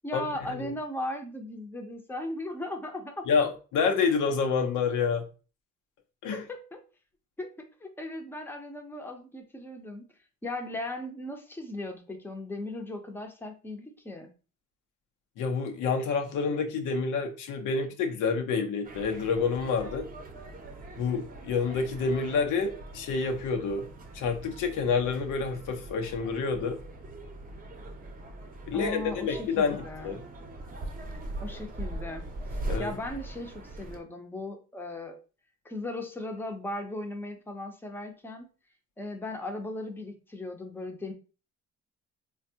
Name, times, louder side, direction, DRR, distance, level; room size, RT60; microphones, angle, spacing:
voice 1, 0.0-3.2 6.3-6.8 7.4-10.1 10.4-14.3 28.7-30.2 31.4-32.2 32.8-35.2 35.6-38.5 39.0-41.1, left 1 dB, 5° left, 0.6 m, -37 dB
voice 2, 3.3-5.2 6.2-6.4 15.4-20.0 21.0-23.9 24.1-26.8 28.7-30.2 32.7-32.9, left 5 dB, 85° left, 0.7 m, -28 dB
sound 1, 18.8-34.0, right 1 dB, 30° right, 0.7 m, -41 dB
3.4 x 2.3 x 2.7 m
cardioid pair, 90°, 30 cm